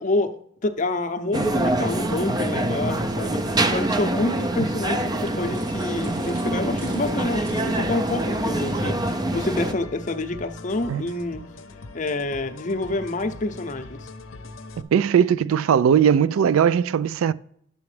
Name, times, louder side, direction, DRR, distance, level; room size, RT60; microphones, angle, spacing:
voice 1, 0.0-3.4 3.7-11.5 11.9-14.1, left 2 dB, 40° left, 0.6 m, -28 dB
sound 1, 1.3-9.7, right 1 dB, 20° right, 0.4 m, -25 dB
sound 2, 4.2-8.3, right 3 dB, 60° right, 2.0 m, -48 dB
sound 3, 6.8-14.8, left 3 dB, 70° left, 0.7 m, -41 dB
voice 2, 14.8-17.3, right 8 dB, 85° right, 0.3 m, -19 dB
9.8 x 6.9 x 3.2 m
head